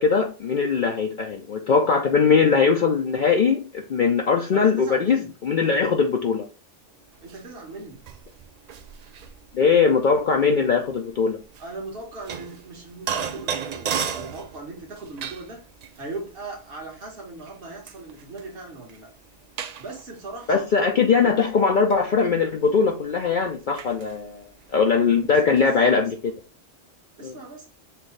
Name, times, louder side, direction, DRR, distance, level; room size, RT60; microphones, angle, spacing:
voice 1, 0.0-6.5 9.5-11.4 20.5-24.4 24.7-26.2 27.2-27.4, left 5 dB, 55° left, 2 dB, 0.6 m, -21 dB
voice 2, 4.5-5.3 7.2-8.1 11.6-15.6 16.0-19.1 19.8-20.6 21.1-21.5 25.5-25.6 27.2-27.7, right 3 dB, 55° right, 0 dB, 1.5 m, -38 dB
sound 1, 7.1-25.8, right 7 dB, 80° right, 0.3 m, -37 dB
5.8 x 2.7 x 3.2 m, 0.35 s
omnidirectional pair, 1.2 m